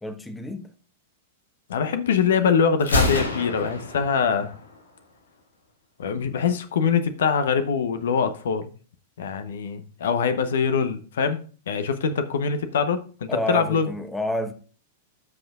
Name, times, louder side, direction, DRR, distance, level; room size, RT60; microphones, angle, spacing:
voice 1, 0.0-0.7 13.3-14.5, left 1 dB, 5° left, 1.0 m, -29 dB
voice 2, 1.7-4.6 6.0-8.7 9.2-11.4 11.7-13.9, left 6 dB, 70° left, 0.8 m, -23 dB
Gunshot gunfire, 2.8-4.8, left 1 dB, 85° left, 1.7 m, -26 dB
13.0 x 5.9 x 2.4 m
hypercardioid pair, 100°, 0 cm